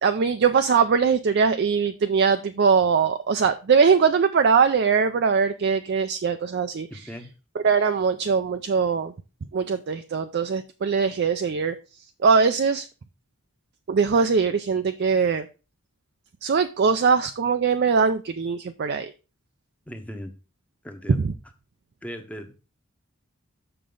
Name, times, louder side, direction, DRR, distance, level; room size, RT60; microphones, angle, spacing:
voice 1, 0.0-6.9 7.6-9.1 9.5-11.7 12.2-12.9 13.9-15.5 16.4-19.1 21.1-21.3, right 5 dB, 50° right, 0.4 m, -21 dB
voice 2, 6.9-7.4 19.9-20.3 20.8-21.3 22.0-22.5, equal, 5° left, 0.8 m, -38 dB
6.8 x 6.3 x 3.8 m
head